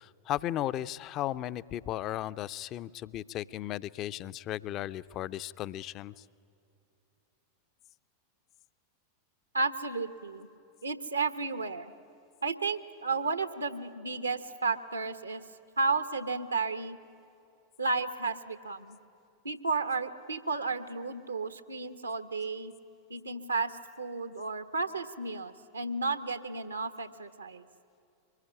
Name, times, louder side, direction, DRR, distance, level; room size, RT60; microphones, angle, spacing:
voice 1, 0.0-6.1, left 13 dB, 35° left, 16 dB, 0.6 m, -35 dB
voice 2, 9.5-10.5 10.8-11.9 12.4-15.4 15.8-17.0 17.8-19.0 19.4-22.7 23.1-27.6, right 4 dB, 80° right, 12 dB, 1.1 m, -33 dB
24.0 x 21.0 x 9.9 m, 2.6 s
figure-of-eight pair, 90°, 0 cm